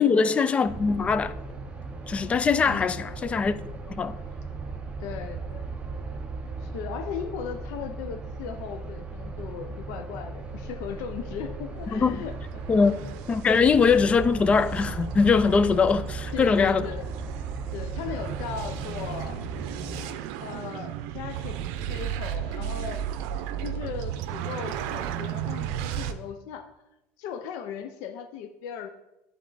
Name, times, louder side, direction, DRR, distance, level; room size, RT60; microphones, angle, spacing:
voice 1, 0.0-1.3 2.1-3.6 3.9-4.1 11.9-12.2 12.7-16.9, left 5 dB, 20° left, 0.3 m, -22 dB
sound 1, 0.6-20.0, right 3 dB, 20° right, 0.7 m, -37 dB
voice 2, 5.0-5.7 6.6-12.3 12.7-13.0 13.6-13.8 16.3-17.1 17.7-19.4 20.4-21.6 21.9-23.0 23.6-26.8 27.2-28.9, left 7 dB, 70° left, 0.6 m, -37 dB
sound 2, 11.7-26.1, right 10 dB, 80° right, 0.5 m, -35 dB
11.0 x 3.6 x 3.9 m
cardioid pair, 140°, 6 cm